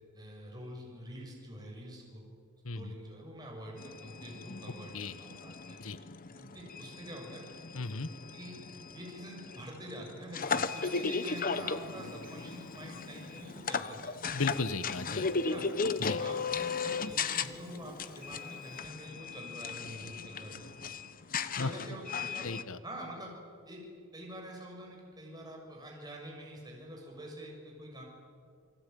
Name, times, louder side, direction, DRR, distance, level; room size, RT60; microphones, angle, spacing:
voice 1, 0.1-2.2 2.7-5.8 6.3-7.4 8.3-8.6 8.9-14.3 15.4-15.7 16.1-20.9 21.6-22.5 22.8-23.3 23.6-28.0, equal, 20° right, -1 dB, 6.7 m, -46 dB
sound 1, 3.8-22.6, left 5 dB, 40° left, 1.0 m, -36 dB
voice 2, 7.7-8.1 14.3-15.3 16.0-16.2 21.6-22.0 22.4-22.8, left 3 dB, 65° left, 12 dB, 1.2 m, -35 dB
Bird, 10.4-18.8, right 4 dB, 40° right, 2.5 m, -59 dB
29.5 x 20.5 x 9.3 m, 2.2 s
head